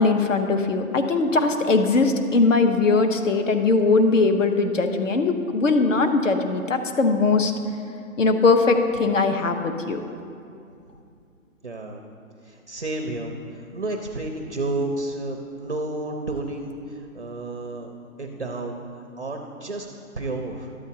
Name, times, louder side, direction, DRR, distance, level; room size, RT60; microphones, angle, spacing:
voice 1, 0.0-7.5 8.2-10.0, left 3 dB, 60° left, 7 dB, 0.8 m, -20 dB
voice 2, 11.6-12.0 12.4-17.9 18.2-19.9 20.2-20.7, right 2 dB, 45° right, 3 dB, 0.4 m, -31 dB
12.5 x 8.1 x 2.8 m, 2.5 s
hypercardioid pair, 180°, 43 cm